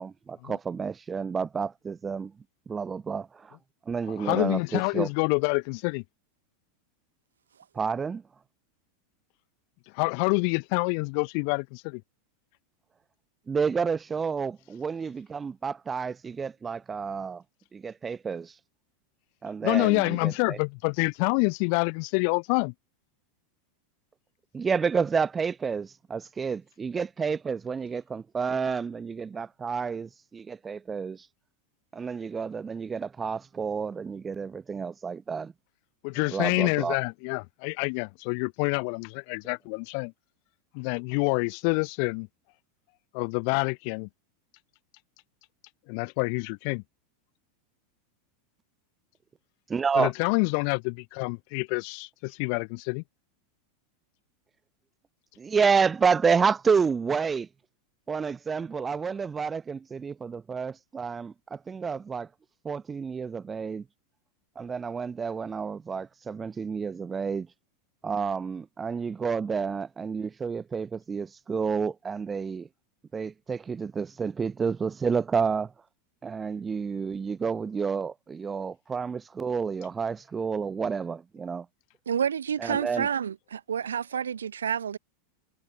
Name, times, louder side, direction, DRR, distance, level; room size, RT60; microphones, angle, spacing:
voice 1, 0.0-2.3 2.7-3.6 3.9-5.1 7.7-8.2 13.5-17.4 17.7-18.5 19.4-20.6 24.5-31.3 31.9-35.5 36.3-37.0 49.7-50.1 55.4-57.5 58.1-62.3 62.6-63.8 64.6-67.5 68.0-72.7 73.1-75.7 76.2-81.7 82.6-83.1, right 5 dB, 20° right, 0.9 m, -29 dB
voice 2, 4.2-6.0 9.9-12.0 19.6-22.7 36.0-40.1 40.7-42.3 43.1-44.1 45.9-46.8 50.0-53.0, left 40 dB or more, 50° left, 0.6 m, -27 dB
voice 3, 82.1-85.0, right 8 dB, 70° right, 0.6 m, -29 dB
figure-of-eight pair, 85°, 0 cm